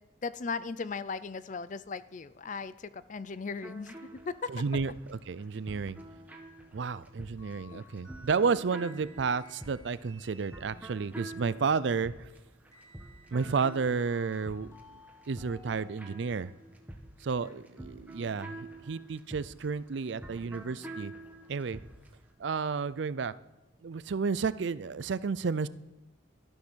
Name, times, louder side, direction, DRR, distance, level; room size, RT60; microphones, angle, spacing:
voice 1, 0.2-4.6 7.7-7.8 8.4-8.5 17.4-17.6, left 4 dB, 40° left, 16 dB, 0.5 m, -38 dB
sound 1, 3.6-22.2, right 1 dB, 10° right, 1.3 m, -47 dB
voice 2, 4.5-6.0 6.7-12.1 13.3-14.7 15.3-16.5 17.2-21.1 21.5-21.8 22.4-23.3 23.8-25.7, right 5 dB, 70° right, 17 dB, 0.5 m, -31 dB
sound 2, 7.4-11.1 12.7-16.5, left 1 dB, 20° left, 3.4 m, -56 dB
12.5 x 11.5 x 6.3 m, 1.0 s
head